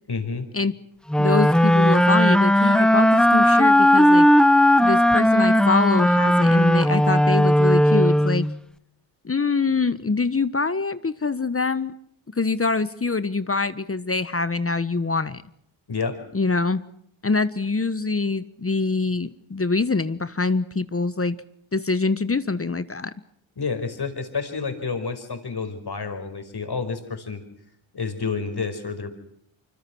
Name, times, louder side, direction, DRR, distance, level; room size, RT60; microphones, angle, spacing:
voice 1, 0.1-0.5 15.9-16.2 23.6-27.4 27.9-29.1, left 4 dB, 50° left, 8 dB, 5.4 m, -29 dB
sound 1, 1.1-8.6, equal, ahead, 1.1 m, -17 dB
voice 2, 1.2-4.3 4.8-8.4 9.2-11.9 12.3-15.4 16.3-16.8 17.2-21.4 21.7-23.1, left 3 dB, 25° left, 14 dB, 1.3 m, -24 dB
25.5 x 25.0 x 6.3 m, 0.70 s
supercardioid pair, 45°, 49 cm